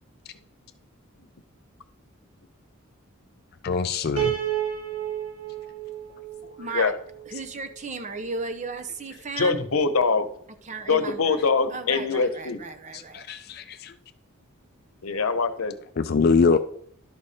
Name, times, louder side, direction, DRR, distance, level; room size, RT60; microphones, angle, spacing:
voice 1, 3.6-4.3 6.4-6.6 12.9-14.0 16.0-16.6, left 4 dB, 45° left, 10 dB, 0.4 m, -23 dB
Piano, 4.2-7.4, right 10 dB, 85° right, 2.2 m, -31 dB
voice 2, 6.6-6.9 7.3-9.6 10.6-11.4 11.7-13.2, right 4 dB, 35° right, 9 dB, 0.6 m, -35 dB
voice 3, 9.4-10.3 10.9-12.6 15.0-15.7, left 4 dB, 85° left, 10 dB, 0.8 m, -23 dB
11.5 x 5.0 x 4.2 m, 0.64 s
head